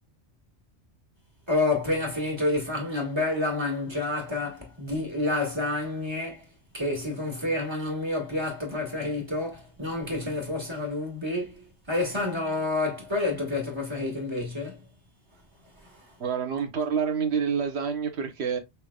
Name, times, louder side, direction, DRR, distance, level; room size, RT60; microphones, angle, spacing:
voice 1, 1.5-6.4 6.7-14.8 15.8-16.0, left 2 dB, 25° right, 2.0 m, -29 dB
voice 2, 16.2-18.6, right 6 dB, 75° right, 1.3 m, -27 dB
5.7 x 3.4 x 2.3 m
omnidirectional pair, 1.1 m